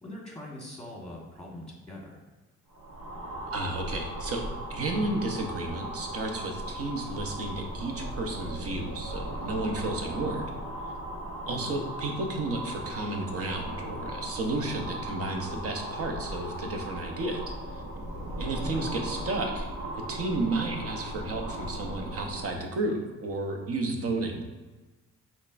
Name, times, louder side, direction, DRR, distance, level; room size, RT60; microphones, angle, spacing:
voice 1, 0.0-2.2 11.5-11.7 18.5-18.8, left 1 dB, ahead, -2 dB, 1.4 m, -42 dB
sound 1, 2.7-22.6, right 1 dB, 90° right, 1.1 m, -37 dB
voice 2, 3.5-4.4 4.7-10.5 11.5-17.4 17.7-17.8 18.4-19.7 20.1-24.4, right 2 dB, 50° right, 3 dB, 0.9 m, -32 dB
5.3 x 3.5 x 2.6 m, 1.2 s
cardioid pair, 90°, 30 cm